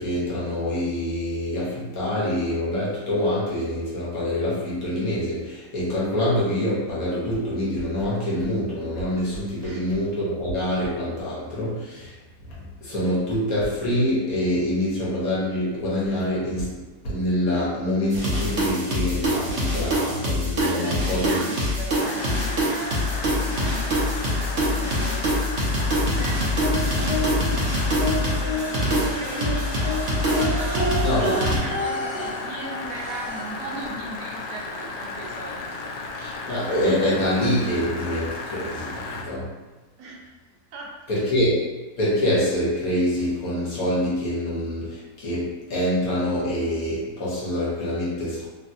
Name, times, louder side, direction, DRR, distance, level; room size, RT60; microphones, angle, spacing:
voice 1, 0.0-12.1 12.5-21.4 31.0-31.4 36.1-39.5 41.1-41.6 42.0-48.5, left 1 dB, 65° left, -7 dB, 1.3 m, -25 dB
sound 1, 18.1-31.6, equal, 55° right, 0.9 m, -24 dB
voice 2, 20.6-35.8 40.0-40.4 40.7-41.2, right 2 dB, 90° right, -2 dB, 1.2 m, -38 dB
sound 2, 22.0-39.2, left 3 dB, 80° left, 0.6 m, -34 dB
sound 3, 26.6-27.5 28.0-33.7 34.9-35.0 35.3-35.4, equal, 20° left, 1.2 m, -30 dB
3.4 x 2.3 x 2.6 m, 1.2 s
omnidirectional pair, 1.7 m